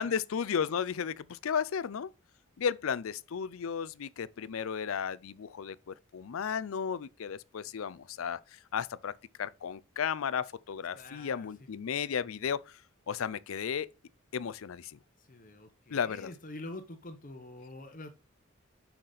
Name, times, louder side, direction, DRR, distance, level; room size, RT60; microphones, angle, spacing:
voice 1, 0.0-2.1 2.6-8.4 8.7-9.1 9.4-12.6 13.1-13.9 14.3-15.0 15.9-16.3, left 7 dB, 75° left, 0.4 m, -34 dB
voice 2, 10.9-11.5 15.2-18.1, left 2 dB, 40° left, 0.9 m, -46 dB
6.4 x 5.9 x 4.0 m
head